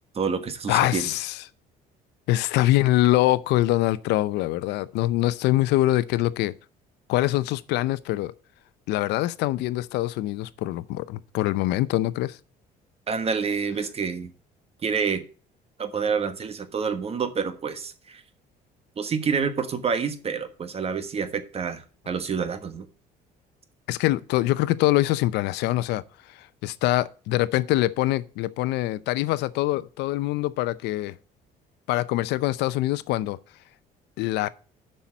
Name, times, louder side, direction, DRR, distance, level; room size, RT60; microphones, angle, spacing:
voice 1, 0.1-1.1 13.1-14.3 14.8-15.3 15.8-18.2 19.0-22.9, right 6 dB, 35° right, 1.4 m, -28 dB
voice 2, 0.7-1.4 2.3-6.5 7.1-8.3 8.9-12.4 23.9-26.0 26.4-31.1 31.9-33.4 34.2-34.5, left 16 dB, 90° left, 0.6 m, -24 dB
7.2 x 5.7 x 7.4 m
cardioid pair, 110°, 17 cm